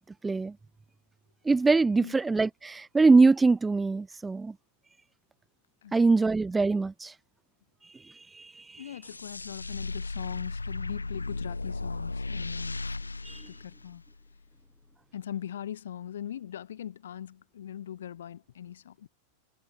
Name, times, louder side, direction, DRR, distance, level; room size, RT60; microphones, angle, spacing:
voice 1, 0.2-0.5 1.4-4.5 5.9-7.1 8.3-8.8 13.2-13.4, right 3 dB, 10° right, 1.1 m, -23 dB
voice 2, 8.8-12.8 13.5-14.0 15.1-19.1, left 10 dB, 65° left, 3.8 m, -40 dB
sound 1, 9.0-14.4, left 3 dB, 80° left, 1.1 m, -36 dB
figure-of-eight pair, 90°, 0 cm